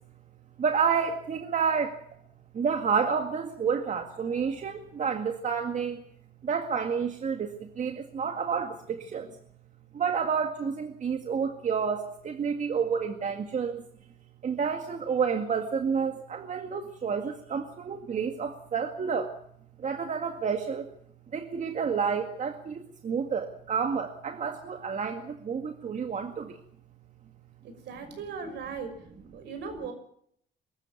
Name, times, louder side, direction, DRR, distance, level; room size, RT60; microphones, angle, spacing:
voice 1, 0.6-2.0 2.5-6.0 6.4-9.3 9.9-13.8 14.4-19.3 19.8-20.9 21.3-26.6, right 6 dB, 45° right, 5 dB, 2.0 m, -29 dB
voice 2, 27.6-29.9, right 5 dB, 75° right, 7 dB, 6.0 m, -39 dB
22.5 x 13.5 x 8.5 m, 0.68 s
cardioid pair, 105°, 18 cm